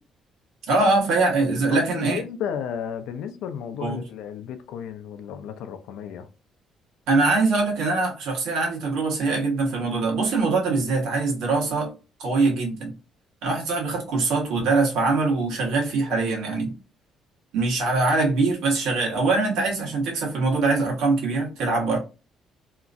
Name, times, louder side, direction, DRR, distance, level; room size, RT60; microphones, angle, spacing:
voice 1, 0.7-2.2 3.8-4.0 7.1-11.9 12.2-12.9 13.4-16.7 17.5-22.0, right 3 dB, 85° right, 1.2 m, -23 dB
voice 2, 1.7-6.3, left 8 dB, 85° left, 0.4 m, -33 dB
2.9 x 2.5 x 2.5 m
cardioid pair, 165°, 0 cm